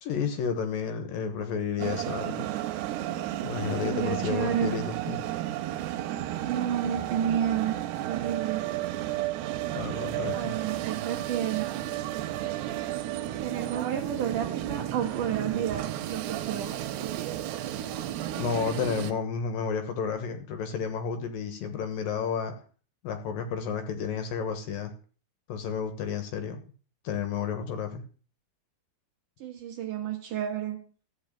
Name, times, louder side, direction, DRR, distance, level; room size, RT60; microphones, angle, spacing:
voice 1, 0.0-2.5 3.4-5.2 9.7-10.5 18.4-22.5 23.0-24.9 25.5-26.6 27.0-28.1, left 6 dB, 70° left, 8 dB, 2.6 m, -31 dB
sound 1, 1.8-19.1, right 13 dB, 80° right, 3.0 m, -33 dB
voice 2, 3.8-4.7 6.4-7.8 8.1-8.6 10.3-11.7 12.4-12.5 12.8-12.9 13.4-17.4 29.4-30.8, right 9 dB, 65° right, 4 dB, 2.3 m, -31 dB
14.5 x 5.5 x 8.9 m, 0.41 s
omnidirectional pair, 4.8 m